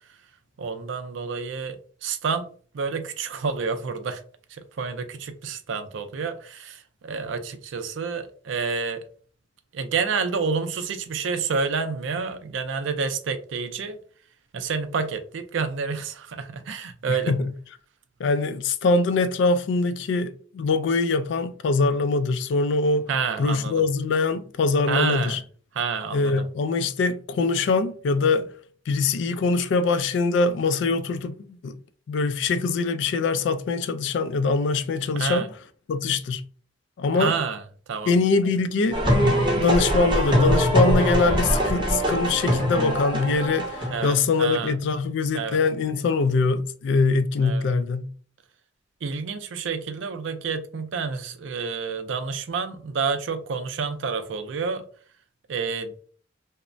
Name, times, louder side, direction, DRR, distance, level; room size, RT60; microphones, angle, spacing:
voice 1, 0.6-4.2 4.5-9.0 9.7-14.0 14.5-17.3 23.1-23.8 24.9-25.4 25.7-26.5 35.1-35.5 37.1-37.6 37.9-38.1 41.2-41.4 43.9-44.7 45.3-45.6 47.4-47.7 49.0-54.9 55.5-55.9, right 5 dB, 70° right, 0.4 m, -29 dB
voice 2, 17.1-17.5 18.2-23.1 23.4-25.4 26.1-28.5 28.9-31.7 32.1-35.5 35.9-36.4 37.0-37.3 38.1-39.0 39.6-48.1, left 3 dB, 65° left, 0.3 m, -23 dB
sound 1, 38.9-44.1, equal, 25° right, 0.6 m, -22 dB
3.1 x 2.0 x 2.5 m
head